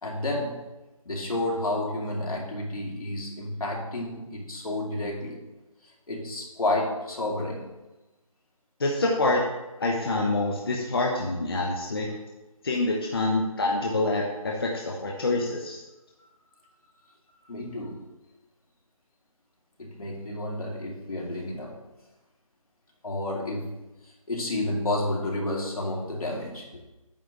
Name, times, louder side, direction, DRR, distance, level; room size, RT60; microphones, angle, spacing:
voice 1, 0.0-0.6 1.0-5.4 6.1-7.7 17.5-18.0 19.8-21.7 23.0-23.7 24.3-26.7, left 1 dB, 80° left, -2 dB, 2.6 m, -30 dB
voice 2, 8.8-9.4 9.8-12.1 12.6-15.8, left 2 dB, 40° left, -1 dB, 0.9 m, -26 dB
8.9 x 3.4 x 6.5 m, 1.0 s
hypercardioid pair, 175°, 18 cm